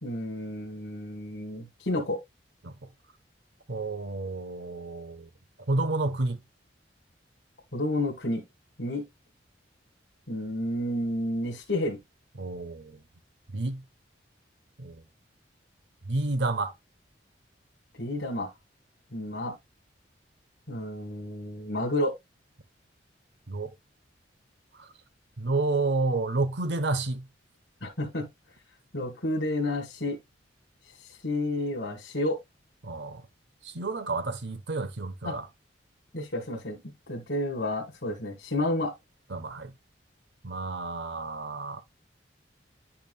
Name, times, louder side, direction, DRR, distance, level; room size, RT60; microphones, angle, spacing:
voice 1, 0.0-2.2 7.7-8.4 8.8-9.0 10.3-12.0 18.0-18.5 19.1-19.5 20.7-22.1 27.8-28.3 28.9-30.2 31.2-32.4 35.3-35.4 36.1-36.8 37.1-38.9, left 1 dB, 65° left, 1.7 m, -30 dB
voice 2, 3.7-5.3 5.7-6.4 12.4-13.0 13.5-13.8 14.8-15.0 16.1-16.7 23.5-23.7 24.7-24.9 25.4-27.3 32.8-33.2 33.6-35.5 39.3-39.7 40.4-41.8, right 2 dB, 70° right, 0.8 m, -30 dB
10.5 x 5.9 x 2.2 m
head